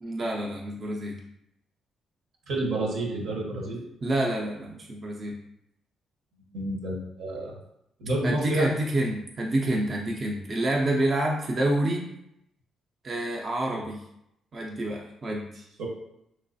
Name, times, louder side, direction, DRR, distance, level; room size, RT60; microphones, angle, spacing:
voice 1, 0.0-1.2 4.0-5.3 8.2-12.0 13.0-14.0 14.5-15.6, right 1 dB, 40° right, -1 dB, 0.5 m, -28 dB
voice 2, 2.5-3.9 6.5-7.6 8.0-8.7 15.8-15.9, right 1 dB, 85° right, -2 dB, 0.9 m, -29 dB
3.1 x 3.1 x 2.6 m, 0.80 s
cardioid pair, 90°, 0 cm